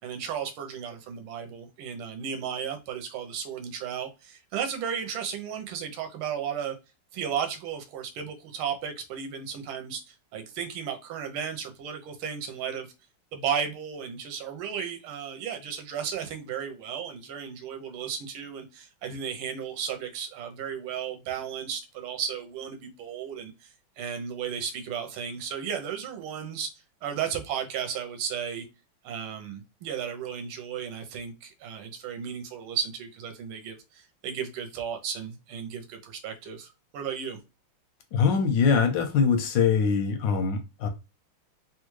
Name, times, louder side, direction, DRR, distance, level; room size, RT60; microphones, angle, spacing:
voice 1, 0.0-6.7 7.1-12.9 13.3-26.7 27.0-28.7 29.0-37.4, right 7 dB, 75° right, 1.5 m, -34 dB
voice 2, 38.1-40.9, left 6 dB, 75° left, 1.1 m, -23 dB
3.6 x 2.2 x 3.1 m
omnidirectional pair, 2.4 m